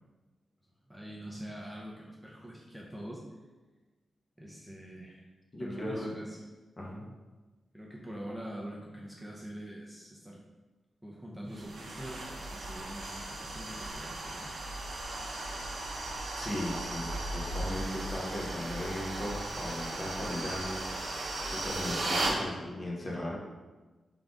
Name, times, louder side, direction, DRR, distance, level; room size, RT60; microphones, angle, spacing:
voice 1, 0.9-3.2 4.4-5.3 5.6-6.4 7.7-10.4 11.0-14.5, equal, ahead, -3 dB, 0.6 m, -44 dB
voice 2, 5.5-6.1 6.8-7.0 16.4-21.1 21.4-23.4, left 1 dB, 35° left, -3 dB, 1.0 m, -37 dB
sound 1, 11.5-22.4, right 2 dB, 70° right, 0.9 m, -36 dB
3.8 x 3.4 x 3.6 m, 1.2 s
cardioid pair, 75°, 0 cm